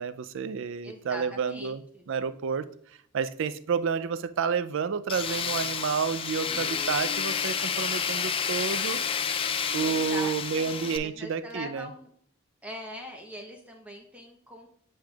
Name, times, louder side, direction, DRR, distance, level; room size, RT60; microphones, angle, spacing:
voice 1, 0.0-1.8 2.1-2.7 3.1-9.0 9.7-11.9, right 6 dB, 60° right, 13 dB, 0.4 m, -30 dB
voice 2, 0.8-2.0 9.8-12.1 12.6-14.7, equal, 5° right, 1 dB, 0.7 m, -42 dB
Tools, 5.1-11.0, left 7 dB, 25° left, 0.3 m, -30 dB
7.8 x 6.6 x 2.3 m, 0.63 s
head